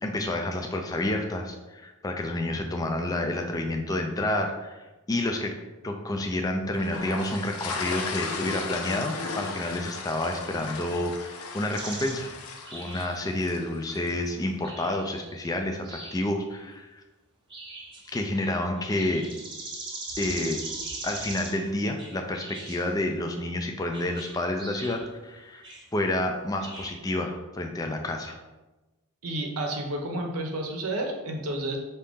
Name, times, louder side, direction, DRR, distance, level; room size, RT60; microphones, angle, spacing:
voice 1, 0.0-5.5 5.8-12.3 12.7-17.0 18.1-19.3 20.2-20.6 21.0-25.6 25.9-28.3, left 1 dB, 15° left, 3 dB, 0.3 m, -29 dB
sound 1, 6.8-14.1, left 4 dB, 70° left, 0.6 m, -36 dB
sound 2, 11.7-12.2 12.6-13.4 14.1-14.3 14.6-15.4 15.8-16.3 17.5-21.7 22.0-22.9 23.9-25.1 25.6-25.9 26.5-27.0, right 2 dB, 20° right, 0.8 m, -40 dB
voice 2, 29.2-31.8, right 1 dB, 75° right, 3 dB, 0.7 m, -31 dB
5.0 x 2.8 x 3.5 m, 1.1 s
head